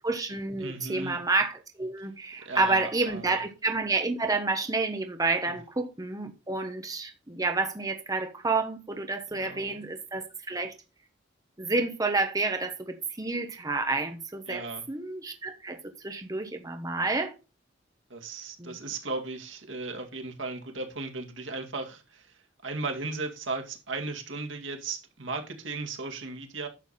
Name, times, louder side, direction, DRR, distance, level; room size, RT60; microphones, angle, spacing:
voice 1, 0.0-10.7 11.6-17.3 18.6-18.8, right 3 dB, 20° right, 1.0 m, -29 dB
voice 2, 0.6-1.2 2.5-3.4 5.5-5.6 9.4-9.9 14.5-14.8 18.1-26.7, right 3 dB, 75° right, 2.2 m, -36 dB
11.0 x 7.0 x 4.2 m
head